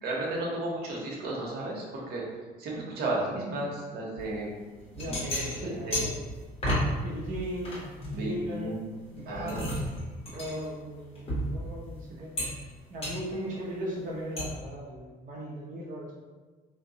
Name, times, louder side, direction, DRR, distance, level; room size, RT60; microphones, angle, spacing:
voice 1, 0.0-2.2 2.6-4.5 5.1-6.0 8.1-8.9 9.3-9.6, right 2 dB, 70° right, -3 dB, 0.9 m, -33 dB
sound 1, 4.2-4.3 4.8-6.9 7.2-8.8 9.2-11.9 12.4-12.7 13.0-13.2 14.4-14.5, equal, 35° left, 1.1 m, -33 dB
voice 2, 4.9-6.2 7.0-7.8 8.1-8.7 9.1-9.7 10.3-12.3 12.9-16.1, equal, 50° right, -5 dB, 0.7 m, -37 dB
2.7 x 2.2 x 3.8 m, 1.3 s
cardioid pair, 110°, 17 cm